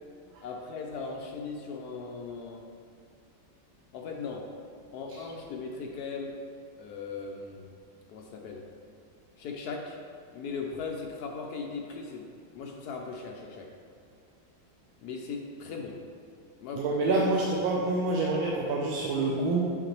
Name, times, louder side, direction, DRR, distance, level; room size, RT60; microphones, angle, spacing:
voice 1, 0.4-2.7 3.9-4.5 4.9-6.4 6.8-7.7 8.1-8.6 9.4-10.0 10.3-12.3 12.5-13.7 15.0-16.0 16.6-17.2, left 4 dB, 75° left, 1 dB, 0.9 m, -38 dB
voice 2, 16.8-19.6, right 2 dB, 85° right, -2 dB, 1.4 m, -27 dB
6.7 x 5.9 x 3.0 m, 2.2 s
omnidirectional pair, 2.2 m